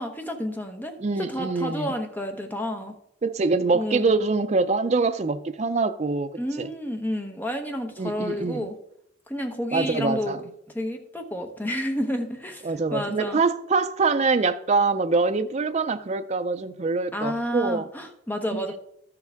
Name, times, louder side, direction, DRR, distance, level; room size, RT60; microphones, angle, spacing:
voice 1, 0.0-2.9 3.7-4.2 6.4-8.7 9.3-10.4 10.7-13.4 17.1-18.8, equal, 10° left, 0.9 m, -30 dB
voice 2, 1.0-1.9 3.2-6.7 8.0-8.7 9.7-10.4 12.6-17.9 18.5-18.8, right 4 dB, 35° right, 0.4 m, -24 dB
13.0 x 6.7 x 3.5 m
head